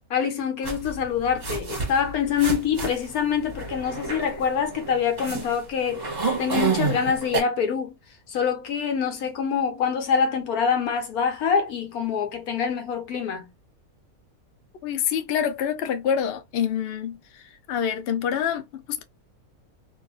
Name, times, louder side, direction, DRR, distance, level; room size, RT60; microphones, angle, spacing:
voice 1, 0.1-7.9 8.3-13.5, left 7 dB, 90° left, 1.3 m, -25 dB
sound 1, 0.6-7.4, right 4 dB, 35° right, 0.8 m, -29 dB
voice 2, 14.8-19.0, left 8 dB, 65° left, 0.6 m, -27 dB
2.7 x 2.6 x 2.5 m
omnidirectional pair, 1.5 m